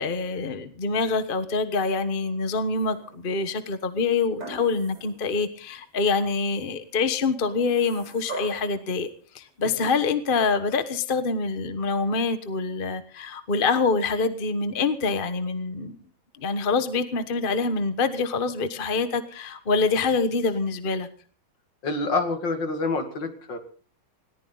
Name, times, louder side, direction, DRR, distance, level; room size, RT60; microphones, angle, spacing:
voice 1, 0.0-9.1 9.3-16.0 16.4-21.1, left 4 dB, 30° left, 10 dB, 1.2 m, -25 dB
sound 1, 2.8-3.4 4.4-5.2 5.7-5.8 7.4-8.8 9.9-10.0, right 3 dB, 90° right, 6.0 m, -41 dB
voice 2, 21.8-23.6, left 3 dB, 60° left, 7 dB, 2.9 m, -27 dB
19.5 x 18.0 x 4.0 m, 0.40 s
omnidirectional pair, 2.2 m